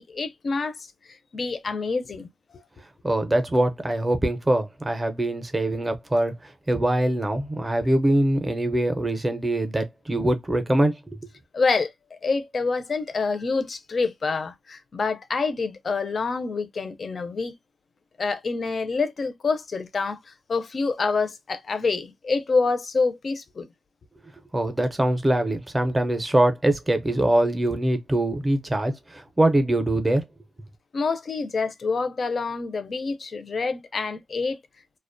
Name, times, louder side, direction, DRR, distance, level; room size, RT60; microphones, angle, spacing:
voice 1, 0.0-2.6 11.5-17.5 18.2-23.7 30.9-34.6, left 4 dB, 45° left, 0.4 m, -27 dB
voice 2, 3.0-11.3 24.5-30.2, right 1 dB, 15° right, 0.5 m, -23 dB
2.4 x 2.1 x 2.5 m
wide cardioid pair, 115°, 0 cm